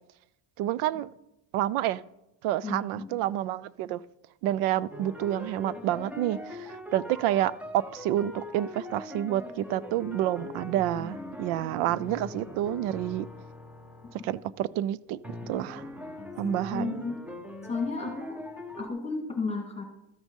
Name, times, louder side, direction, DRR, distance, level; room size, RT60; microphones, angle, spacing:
voice 1, 0.6-1.1 1.5-2.0 2.4-4.0 4.4-13.3 14.1-15.2 15.5-15.9 16.4-17.0, right 13 dB, 80° right, 0.6 m, -29 dB
voice 2, 2.6-3.1 16.4-17.2 17.7-18.4 18.8-19.8, left 4 dB, 15° left, 2.0 m, -33 dB
sound 1, 4.9-14.3 15.2-18.9, left 1 dB, 5° right, 0.6 m, -42 dB
13.0 x 6.2 x 5.4 m
cardioid pair, 125°, 48 cm